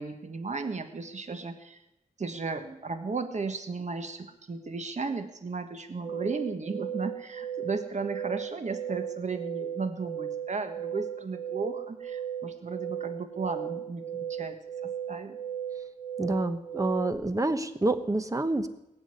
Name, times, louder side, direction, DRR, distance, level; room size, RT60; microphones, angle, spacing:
voice 1, 0.0-1.8 2.2-15.4, right 4 dB, 55° right, 7 dB, 1.4 m, -35 dB
sound 1, 6.0-17.1, right 9 dB, ahead, 5.2 m, -36 dB
voice 2, 16.2-18.7, right 2 dB, 25° right, 10 dB, 1.1 m, -28 dB
20.0 x 7.1 x 9.7 m, 0.90 s
wide cardioid pair, 105°, 15 cm